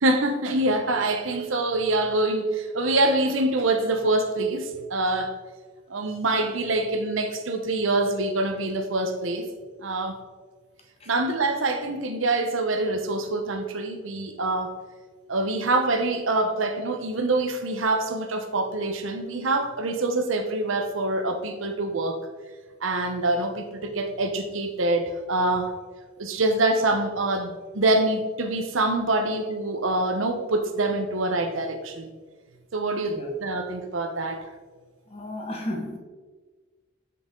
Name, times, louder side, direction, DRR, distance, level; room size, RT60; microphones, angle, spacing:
voice 1, 0.0-5.3 5.9-9.5 9.8-10.2 11.1-14.7 15.3-22.2 22.8-25.7 26.2-32.1 32.7-34.5 35.7-35.8, right 2 dB, 70° right, 5 dB, 0.9 m, -25 dB
voice 2, 35.1-36.0, left 1 dB, 30° left, 0 dB, 1.3 m, -33 dB
7.6 x 5.9 x 3.7 m, 1.4 s
head